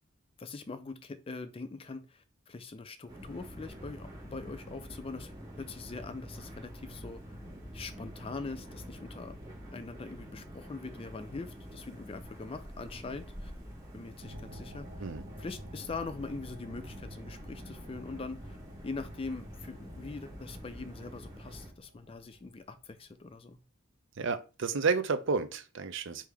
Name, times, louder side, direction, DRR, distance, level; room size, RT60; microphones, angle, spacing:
voice 1, 0.4-5.3 5.6-7.2 7.7-9.4 9.7-13.5 13.9-14.9 15.4-18.6 18.8-23.6, left 3 dB, 25° left, 0.4 m, -42 dB
sound 1, 3.1-21.7, equal, 20° right, 1.5 m, -47 dB
sound 2, 14.2-23.3, equal, 35° right, 0.8 m, -50 dB
voice 2, 24.2-26.3, right 4 dB, 60° right, 0.5 m, -31 dB
3.5 x 2.8 x 4.7 m
head